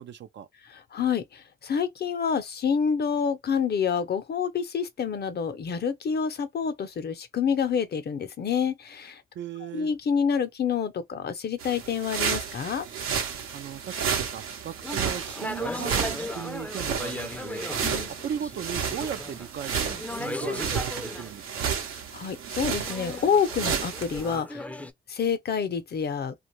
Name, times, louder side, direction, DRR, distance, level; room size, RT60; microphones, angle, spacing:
voice 1, 0.0-0.5 9.4-9.9 13.5-17.6 18.2-21.7, right 9 dB, 60° right, 0.4 m, -37 dB
voice 2, 0.6-9.2 9.6-12.8 17.8-18.1 22.1-24.7 25.1-26.3, left 6 dB, 50° left, 0.7 m, -28 dB
sound 1, 11.6-24.4, right 7 dB, 85° right, 0.8 m, -32 dB
sound 2, 14.8-21.3 22.8-24.9, left 2 dB, 5° left, 0.5 m, -37 dB
2.5 x 2.3 x 3.0 m
cardioid pair, 65°, 21 cm